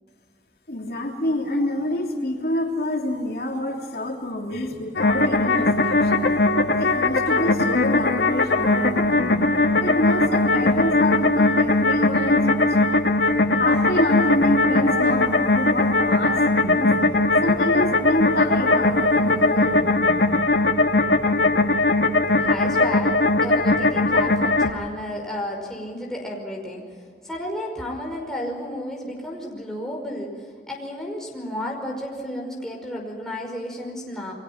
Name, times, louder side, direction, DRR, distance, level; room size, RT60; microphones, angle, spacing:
voice 1, 0.7-6.3 6.7-9.4 9.8-13.0 13.5-16.9 17.4-20.4, left 1 dB, 60° left, 0 dB, 3.2 m, -27 dB
sound 1, 5.0-24.7, left 2 dB, 85° left, 1.7 m, -20 dB
voice 2, 22.4-26.8 27.2-34.3, left 1 dB, 5° left, -2 dB, 5.4 m, -32 dB
30.0 x 23.5 x 5.9 m, 2.1 s
head